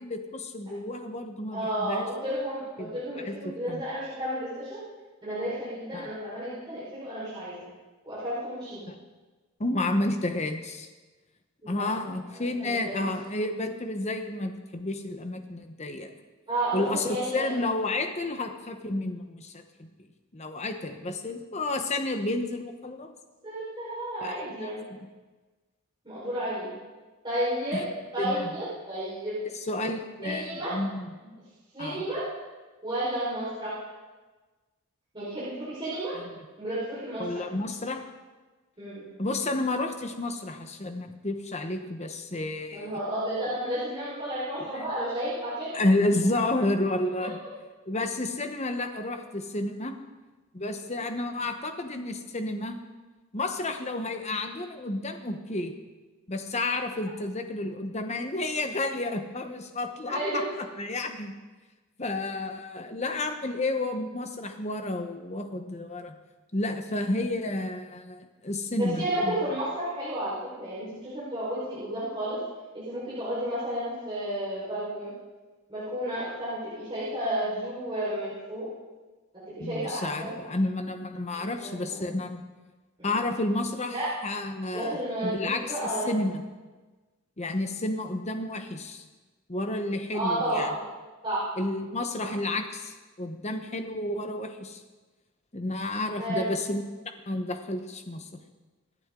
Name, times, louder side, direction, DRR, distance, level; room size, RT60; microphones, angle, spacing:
voice 1, 0.0-2.1 2.8-2.9 3.2-3.8 5.9-6.1 8.9-9.0 9.6-10.9 11.7-16.1 16.7-17.1 17.3-19.9 20.3-23.1 24.2-24.7 25.0-25.1 27.7-27.8 28.2-28.5 29.6-31.1 31.8-32.0 36.1-36.3 37.2-38.0 39.2-42.9 44.6-44.8 45.7-47.4 47.9-49.9 50.5-52.8 53.3-55.7 56.3-60.4 60.8-61.3 62.0-66.1 66.5-69.4 79.6-82.4 83.0-84.0 84.2-85.6 86.0-86.4 87.4-89.0 89.5-90.7 91.6-94.8 95.5-96.8 97.3-98.3, left 2 dB, 30° left, 6 dB, 1.0 m, -31 dB
voice 2, 1.5-4.8 5.2-7.6 8.0-8.8 11.6-11.9 12.3-13.0 16.5-17.6 23.4-24.8 26.0-26.7 27.2-29.4 30.2-30.8 31.7-32.3 32.8-33.7 35.1-36.2 36.6-37.4 38.8-39.0 42.7-45.7 47.2-47.5 60.0-60.5 68.8-72.4 72.7-75.1 75.7-78.7 79.3-80.4 81.4-82.0 83.0-83.2 83.9-84.1 84.7-86.2 90.1-90.7 91.2-91.5 96.2-96.5, right 1 dB, 20° right, -11 dB, 4.6 m, -32 dB
25.5 x 8.7 x 3.8 m, 1.3 s
head